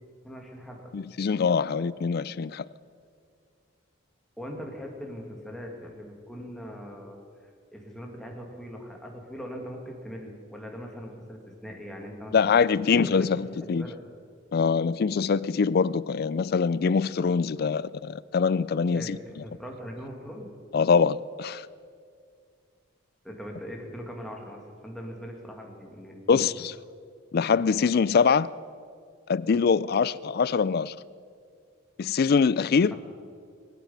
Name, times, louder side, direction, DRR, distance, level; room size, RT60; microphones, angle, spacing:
voice 1, 0.2-0.9 4.4-7.2 7.7-12.5 12.9-13.3 13.6-14.0 18.9-20.5 23.2-26.4 32.9-33.0, equal, ahead, 2.2 m, -41 dB
voice 2, 0.9-2.7 12.3-13.9 14.5-19.2 20.7-21.7 26.3-26.5 27.3-28.5 29.3-30.9 32.0-32.9, left 5 dB, 50° left, 0.4 m, -23 dB
26.0 x 9.1 x 5.6 m
head